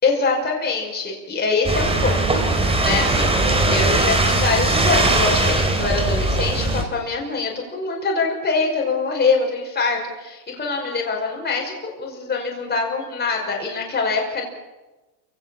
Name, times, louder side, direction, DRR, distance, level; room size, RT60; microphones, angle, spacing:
voice 1, 0.0-14.5, left 4 dB, 20° left, -1 dB, 5.6 m, -24 dB
sound 1, 1.6-6.8, right 2 dB, 10° right, 3.7 m, -19 dB
29.0 x 17.0 x 7.2 m, 1.1 s
supercardioid pair, 130°, 49 cm